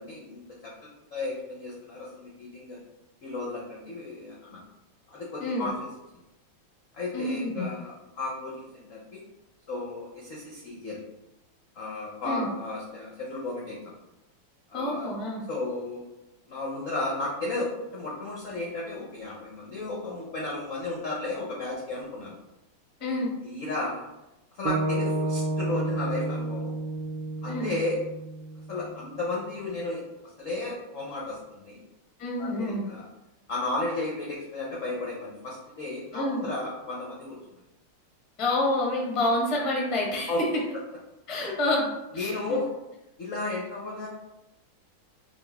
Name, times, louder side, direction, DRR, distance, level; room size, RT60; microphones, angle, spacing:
voice 1, 0.0-2.8 3.2-4.6 5.1-5.9 6.9-9.2 9.7-11.0 11.7-13.9 14.7-15.1 15.5-16.0 16.5-22.3 23.4-24.0 24.5-26.7 27.4-28.0 28.7-30.0 30.4-31.8 32.4-33.0 33.5-37.4 40.3-40.4 41.3-41.6 42.1-42.7 43.2-44.1, left 2 dB, 65° left, -3 dB, 0.8 m, -34 dB
voice 2, 7.1-7.7 12.2-12.5 14.7-15.4 23.0-23.3 27.5-27.7 32.2-32.8 36.1-36.4 38.4-40.5 41.3-42.6, left 1 dB, 30° left, -2 dB, 0.5 m, -28 dB
sound 1, 24.6-28.9, right 2 dB, 80° right, 1.6 m, -30 dB
5.1 x 3.0 x 3.4 m, 0.95 s
omnidirectional pair, 2.4 m